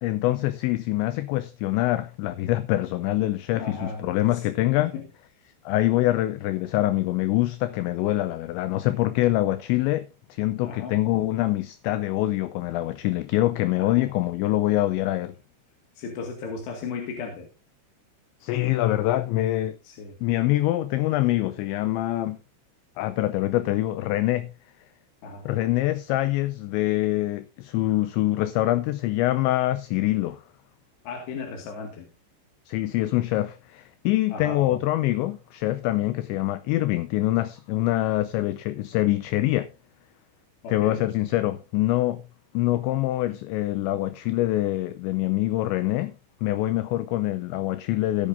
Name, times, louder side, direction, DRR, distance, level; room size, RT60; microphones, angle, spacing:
voice 1, 0.0-4.9 5.7-15.4 18.4-19.8 20.2-22.4 23.0-24.5 25.5-30.4 32.7-39.7 40.7-42.2 42.5-46.1 46.4-48.3, left 16 dB, 80° left, 2.8 m, -25 dB
voice 2, 3.6-4.5 4.8-5.1 10.6-11.0 13.8-14.1 16.0-17.5 19.8-20.2 25.2-25.5 31.0-32.1 34.3-34.8 40.6-41.0, left 4 dB, 65° left, 3.9 m, -36 dB
18.0 x 8.6 x 2.6 m
omnidirectional pair, 5.7 m